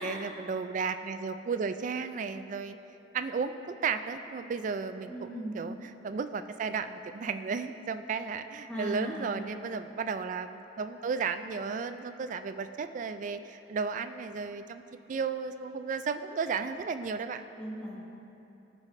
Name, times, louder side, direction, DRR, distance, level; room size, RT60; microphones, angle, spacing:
voice 1, 0.0-2.8 3.1-3.5 3.8-14.8 15.1-17.4, right 5 dB, 45° right, 10 dB, 0.3 m, -34 dB
voice 2, 5.1-5.6 8.7-9.4 17.6-18.0, equal, 5° left, -6 dB, 0.9 m, -38 dB
14.5 x 4.9 x 3.2 m, 2.9 s
head